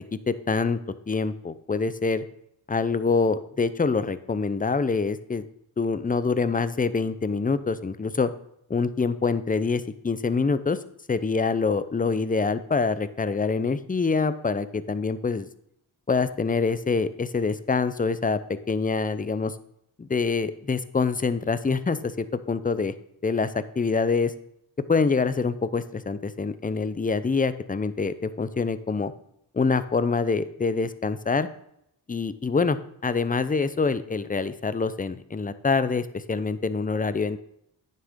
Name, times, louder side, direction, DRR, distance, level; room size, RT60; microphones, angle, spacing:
voice 1, 0.3-0.8 1.1-2.2 2.7-5.4 5.8-8.3 8.7-10.8 11.1-15.5 16.1-18.4 18.7-19.5 20.0-22.9 23.2-24.3 24.9-29.1 29.5-31.5 32.1-37.4, left 4 dB, 20° left, 13 dB, 0.5 m, -25 dB
9.4 x 6.8 x 3.6 m, 0.75 s
wide cardioid pair, 70°, 47 cm